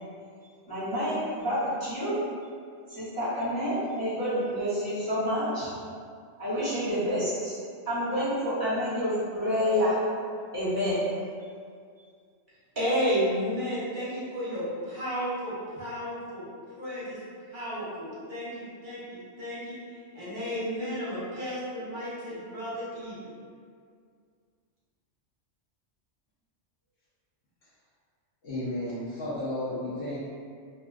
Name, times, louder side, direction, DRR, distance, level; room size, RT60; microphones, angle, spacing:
voice 1, 0.7-2.1 2.9-5.7 6.4-7.6 7.9-10.0 10.5-11.0, equal, 25° left, -14 dB, 0.7 m, -28 dB
voice 2, 12.8-16.4 16.8-17.2 17.5-19.7 20.1-23.3, equal, 50° right, -9 dB, 0.8 m, -32 dB
voice 3, 28.4-30.2, left 1 dB, 65° left, -11 dB, 0.8 m, -33 dB
2.5 x 2.1 x 2.3 m, 2.2 s
omnidirectional pair, 1.2 m